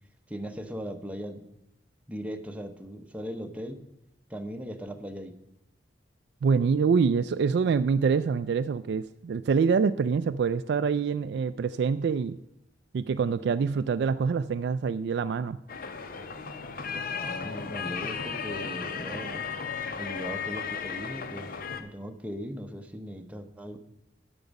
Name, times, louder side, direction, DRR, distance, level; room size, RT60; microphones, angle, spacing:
voice 1, 0.3-1.4 2.1-3.8 4.3-5.4 17.1-19.4 20.0-21.5 21.8-23.8, equal, 10° right, 5 dB, 0.8 m, -38 dB
voice 2, 6.4-12.4 12.9-15.6, right 5 dB, 70° right, 11 dB, 0.3 m, -25 dB
sound 1, 15.7-21.8, left 6 dB, 55° left, 0.7 m, -35 dB
10.5 x 7.0 x 5.3 m, 0.85 s
head